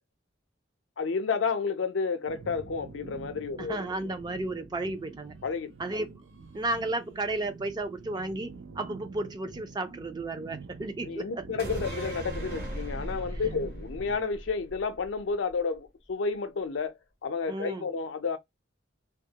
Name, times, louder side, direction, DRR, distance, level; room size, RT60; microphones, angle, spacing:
voice 1, 1.0-3.9 5.4-5.7 11.1-16.9 17.2-18.4, left 5 dB, 90° left, 0.5 m, -31 dB
sound 1, 2.3-14.2, right 4 dB, 90° right, 0.5 m, -47 dB
voice 2, 3.6-5.3 5.8-6.2 6.5-11.4 13.3-13.4 17.5-17.9, right 2 dB, 25° right, 0.4 m, -33 dB
sound 2, 11.6-15.2 15.5-15.6, right 1 dB, 50° right, 1.0 m, -38 dB
2.3 x 2.1 x 2.8 m
head